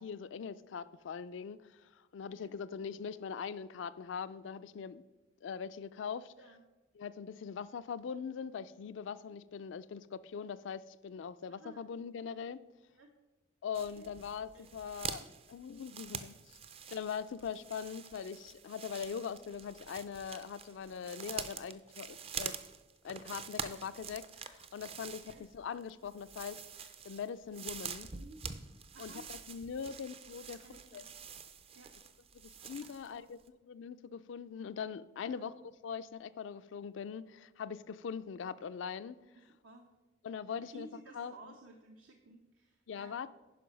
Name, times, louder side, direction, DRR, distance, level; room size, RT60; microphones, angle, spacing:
voice 1, 0.0-5.0 5.4-6.3 7.0-12.6 13.6-15.2 15.5-16.3 16.9-22.5 23.0-28.1 29.0-30.7 30.9-31.0 32.3-35.5 35.8-39.2 40.2-40.9 41.1-41.3 42.9-43.3, left 6 dB, 70° left, 15 dB, 0.4 m, -42 dB
voice 2, 11.5-11.9 12.9-13.1 14.0-14.1 14.5-14.6 25.2-25.4 28.1-28.4 28.9-29.2 30.4-31.0 31.7-31.9 32.8-33.3 35.2-35.5 39.4-39.9 40.6-43.3, right 2 dB, 85° right, 3 dB, 0.8 m, -55 dB
sound 1, 13.7-33.2 33.5-33.6, right 6 dB, 30° right, 0.4 m, -46 dB
10.0 x 5.5 x 5.2 m, 1.1 s
head